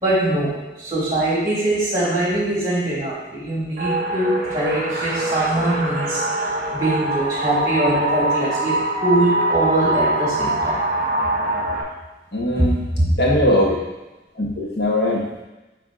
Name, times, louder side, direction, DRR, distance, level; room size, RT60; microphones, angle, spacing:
voice 1, 0.0-10.9 12.6-13.1, right 1 dB, 20° right, -6 dB, 2.3 m, -22 dB
sound 1, 3.8-11.8, right 1 dB, 40° right, 1.1 m, -23 dB
voice 2, 12.3-12.7 13.2-13.8 14.4-15.4, left 1 dB, 70° left, -2 dB, 1.5 m, -20 dB
9.2 x 3.3 x 3.8 m, 1.1 s
head